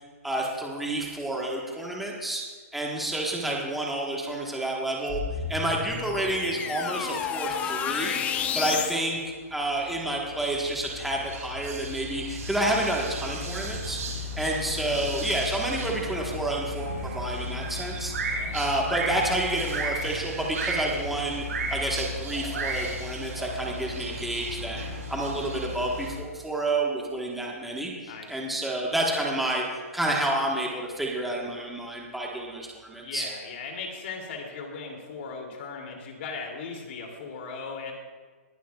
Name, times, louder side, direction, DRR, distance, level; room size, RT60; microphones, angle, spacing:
voice 1, 0.2-2.4 2.7-14.0 14.4-18.1 18.5-21.4 21.7-24.8 25.1-29.6 29.9-33.3, right 1 dB, ahead, -2 dB, 1.3 m, -29 dB
sound 1, 5.1-9.0, left 8 dB, 15° left, 0.5 m, -31 dB
sound 2, 9.5-26.1, equal, 85° right, 3.0 m, -34 dB
voice 2, 18.2-18.6 28.0-28.6 33.0-37.9, left 4 dB, 50° left, 1 dB, 2.7 m, -38 dB
20.5 x 11.0 x 2.3 m, 1.4 s
hypercardioid pair, 155°, 8 cm